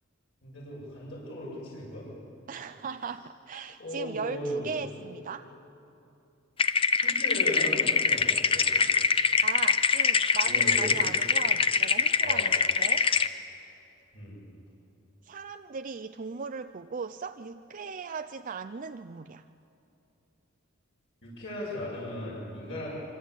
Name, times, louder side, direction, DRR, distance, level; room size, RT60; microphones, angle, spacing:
voice 1, 0.4-2.1 3.8-4.8 7.0-8.8 10.4-11.0 12.2-12.4 14.1-14.4 21.2-22.9, left 1 dB, 65° left, -5 dB, 8.0 m, -37 dB
voice 2, 2.5-5.5 9.4-13.1 15.2-19.4, right 5 dB, 40° right, 9 dB, 0.5 m, -38 dB
sound 1, 6.6-13.3, left 5 dB, 25° left, 0.8 m, -24 dB
25.5 x 24.5 x 8.4 m, 2.8 s
head